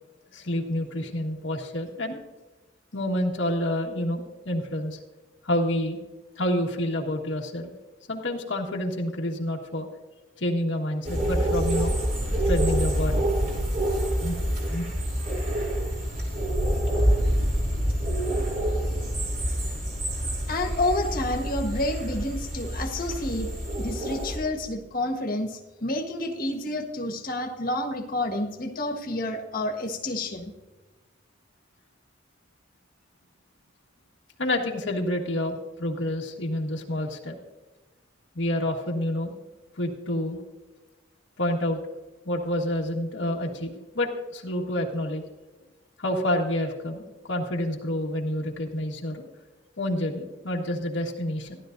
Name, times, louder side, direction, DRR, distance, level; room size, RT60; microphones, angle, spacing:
voice 1, 0.3-2.2 2.9-5.0 5.4-6.0 6.3-7.7 8.1-9.9 10.4-12.0 12.4-13.3 14.2-14.4 14.7-14.9 34.4-37.4 38.3-39.3 39.8-40.4 41.4-41.8 42.2-45.2 46.0-49.2 49.8-51.6, left 1 dB, 80° left, 0 dB, 1.6 m, -28 dB
sound 1, 11.0-24.4, equal, 45° right, 3.3 m, -27 dB
voice 2, 20.5-23.5 23.8-30.5, left 1 dB, 50° left, 1 dB, 1.5 m, -29 dB
15.5 x 11.5 x 2.6 m, 1.2 s
head